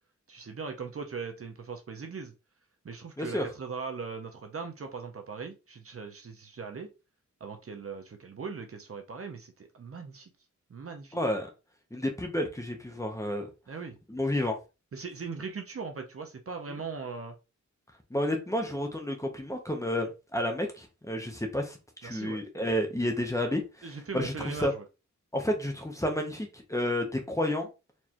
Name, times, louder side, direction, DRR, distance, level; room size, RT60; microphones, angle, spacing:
voice 1, 0.3-2.3 2.8-6.9 7.4-10.3 10.7-11.2 13.7-14.0 14.9-17.4 22.0-22.4 23.8-24.8, right 5 dB, 50° right, 0.8 m, -39 dB
voice 2, 11.1-11.5 11.9-13.5 14.1-14.6 16.7-16.8 18.1-24.7 25.3-27.7, left 1 dB, 10° left, 0.9 m, -31 dB
4.4 x 3.2 x 3.0 m
wide cardioid pair, 155°, 31 cm